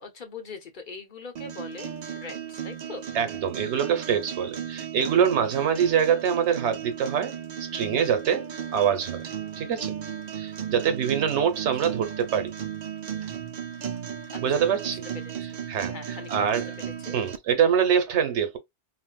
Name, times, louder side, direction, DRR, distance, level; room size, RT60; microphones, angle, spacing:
voice 1, 0.0-3.1 5.6-5.7 14.3-15.1 15.4-15.6 15.9-16.5 17.0-17.2, left 4 dB, 50° left, 0.9 m, -42 dB
sound 1, 1.4-17.4, right 8 dB, 55° right, 0.5 m, -35 dB
voice 2, 3.1-7.3 7.6-9.2 9.6-10.0 10.3-12.5 14.4-15.0 15.7-16.6 17.1-18.6, right 8 dB, 90° right, 1.1 m, -24 dB
4.2 x 2.1 x 2.2 m
omnidirectional pair, 1.1 m